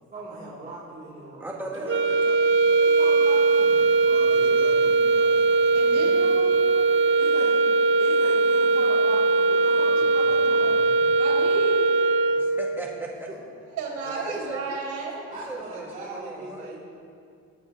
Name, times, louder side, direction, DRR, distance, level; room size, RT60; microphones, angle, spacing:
voice 1, 0.1-2.0 2.7-3.8 7.2-7.6 8.0-10.7 13.3-13.4 15.3-16.7, right 2 dB, 25° right, -10 dB, 4.1 m, -39 dB
voice 2, 1.4-2.9 12.4-13.3 14.1-14.6 15.5-16.7, right 2 dB, 5° right, -3 dB, 2.1 m, -37 dB
sound 1, 1.8-12.7, right 3 dB, 40° right, 0.8 m, -20 dB
voice 3, 3.7-6.1 6.5-6.6 9.8-9.9 10.2-11.1, equal, 15° left, -2 dB, 3.8 m, -43 dB
voice 4, 5.7-6.5 11.2-11.9 13.7-15.2, right 4 dB, 75° right, -5 dB, 3.8 m, -32 dB
19.5 x 14.0 x 3.4 m, 2.4 s
cardioid pair, 90°, 30 cm